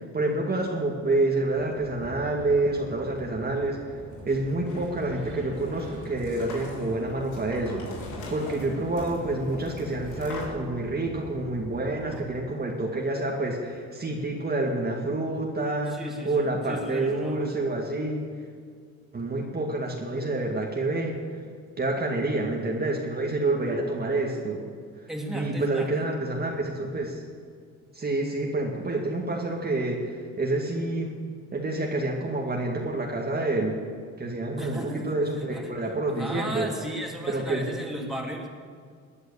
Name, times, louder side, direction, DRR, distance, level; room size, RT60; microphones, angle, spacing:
voice 1, 0.0-3.8 4.3-18.3 19.1-21.2 21.8-24.6 25.3-27.2 27.9-31.2 31.5-33.8 34.2-36.7 37.3-37.7, right 2 dB, 30° right, -1 dB, 2.1 m, -28 dB
sound 1, 1.5-12.2, right 1 dB, 80° right, 3.5 m, -43 dB
sound 2, 4.0-10.5, left 3 dB, 90° left, 3.9 m, -42 dB
voice 2, 15.9-17.5 25.1-26.1 34.6-35.1 35.4-35.7 36.2-38.5, right 1 dB, ahead, -1 dB, 3.1 m, -35 dB
19.0 x 9.8 x 7.1 m, 2.1 s
cardioid pair, 90°, 30 cm